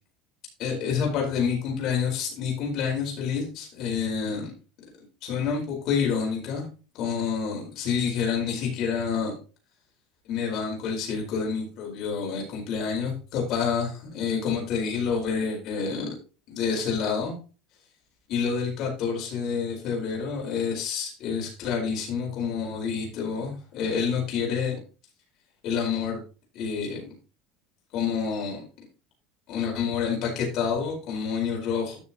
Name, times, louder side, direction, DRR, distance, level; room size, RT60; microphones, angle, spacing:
voice 1, 0.6-4.5 5.2-6.6 7.0-9.3 10.3-16.1 16.5-17.3 18.3-24.8 25.6-26.2 26.5-27.1 27.9-28.6 29.5-32.0, left 6 dB, 45° left, -1 dB, 4.5 m, -28 dB
13.0 x 6.4 x 2.9 m, 0.35 s
cardioid pair, 160°, 0 cm